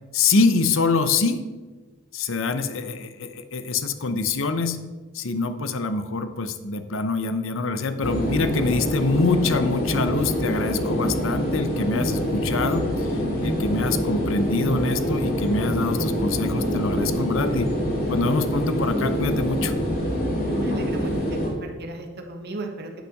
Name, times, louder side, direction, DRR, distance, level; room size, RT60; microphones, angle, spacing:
voice 1, 0.1-1.4 2.1-4.8 5.1-13.1 13.4-17.7 18.1-19.7, left 3 dB, 65° left, 10 dB, 0.8 m, -25 dB
sound 1, 8.0-21.5, equal, 45° left, 2.7 m, -25 dB
voice 2, 20.3-23.1, right 2 dB, 55° right, 3 dB, 1.4 m, -36 dB
10.0 x 5.7 x 6.5 m, 1.3 s
head